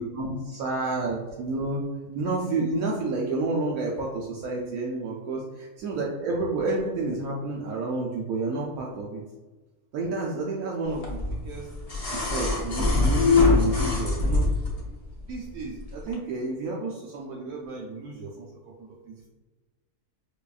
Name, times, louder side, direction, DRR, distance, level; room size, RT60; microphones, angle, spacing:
voice 1, 0.0-1.8 2.1-9.2 9.9-11.7 12.1-15.0 15.3-19.3, right 3 dB, 75° right, -2 dB, 1.0 m, -30 dB
sound 1, 11.0-14.8 16.1-16.2, left 3 dB, 40° left, 0.5 m, -23 dB
4.9 x 2.3 x 2.4 m, 1.2 s
omnidirectional pair, 1.6 m